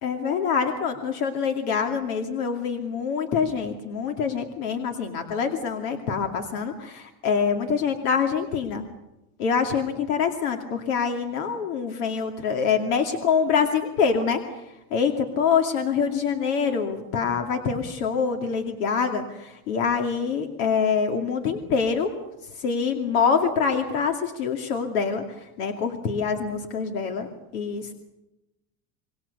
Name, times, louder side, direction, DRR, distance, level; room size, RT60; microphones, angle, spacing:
voice 1, 0.0-8.8 9.4-27.3 27.5-27.9, left 6 dB, 85° left, 4 dB, 2.7 m, -25 dB
27.0 x 22.0 x 6.9 m, 0.94 s
supercardioid pair, 125°, 44 cm